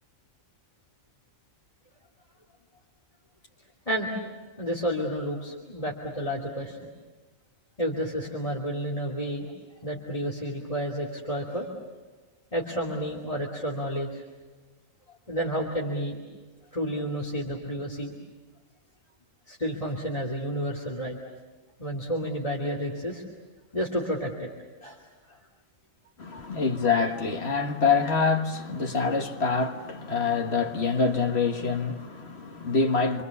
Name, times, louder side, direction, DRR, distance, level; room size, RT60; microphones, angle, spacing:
voice 1, 4.6-6.9 7.8-9.5 9.8-11.7 12.5-14.2 15.3-16.2 16.7-18.1 19.5-21.2 21.8-23.2 23.7-24.5 24.8-25.0 25.3-25.4, equal, 25° left, 2.8 m, -30 dB
voice 2, 26.2-33.2, left 5 dB, 50° left, 1.9 m, -26 dB
28.0 x 25.0 x 7.2 m
omnidirectional pair, 1.4 m